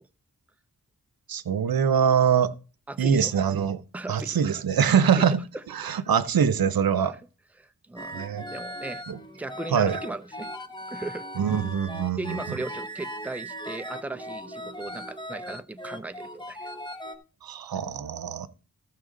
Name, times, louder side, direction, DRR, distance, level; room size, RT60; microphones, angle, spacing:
voice 1, 1.3-2.5 3.0-3.8 4.1-5.4 5.7-7.1 8.1-8.5 9.1-9.2 9.7-10.0 11.4-12.4 17.4-18.5, right 7 dB, 85° right, 0.7 m, -23 dB
voice 2, 2.9-3.3 3.9-4.4 5.1-5.3 5.5-5.6 6.9-7.2 7.6-9.0 9.3-10.5 10.9-11.3 12.2-16.7, right 2 dB, 5° right, 0.6 m, -37 dB
sound 1, 8.0-17.2, equal, 15° left, 1.2 m, -39 dB
15.0 x 5.8 x 3.8 m
wide cardioid pair, 70°, 35 cm